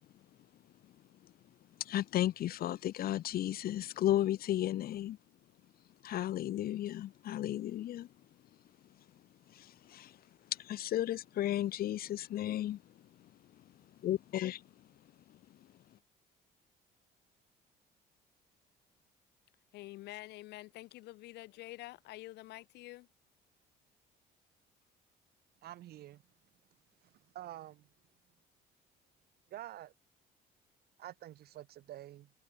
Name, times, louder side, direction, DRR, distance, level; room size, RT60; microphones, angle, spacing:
voice 1, 1.8-5.2 6.0-8.1 9.5-10.2 10.5-12.8 14.0-14.6, left 13 dB, 65° left, 1.5 m, -34 dB
voice 2, 19.7-23.1, left 18 dB, 85° left, 3.0 m, -48 dB
voice 3, 25.6-26.2 27.0-27.9 29.5-29.9 31.0-32.3, right 13 dB, 70° right, 3.3 m, -48 dB
cardioid pair, 110°, 17 cm